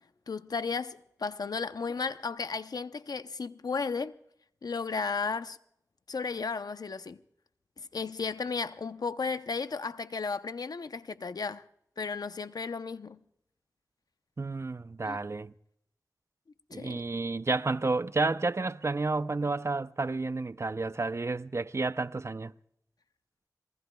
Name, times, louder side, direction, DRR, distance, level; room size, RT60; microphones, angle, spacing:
voice 1, 0.3-4.2 4.6-5.6 6.1-7.2 7.8-11.6 12.0-13.2 15.0-15.2 16.7-17.0, left 4 dB, 80° left, 0.7 m, -34 dB
voice 2, 14.4-15.5 16.7-22.5, right 3 dB, 45° right, 0.6 m, -31 dB
26.5 x 20.0 x 2.3 m
wide cardioid pair, 50°, 7 cm